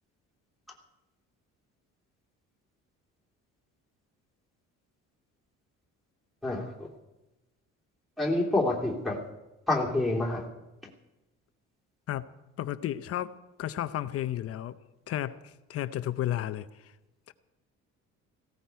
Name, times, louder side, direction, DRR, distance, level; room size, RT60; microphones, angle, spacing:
voice 1, 6.4-6.9 8.2-9.2 9.7-10.4, left 2 dB, ahead, -3 dB, 2.9 m, -27 dB
voice 2, 12.6-14.8 15.1-16.9 17.3-17.4, left 12 dB, 55° left, 12 dB, 0.8 m, -33 dB
18.0 x 17.0 x 4.6 m, 1.0 s
cardioid pair, 145°, 29 cm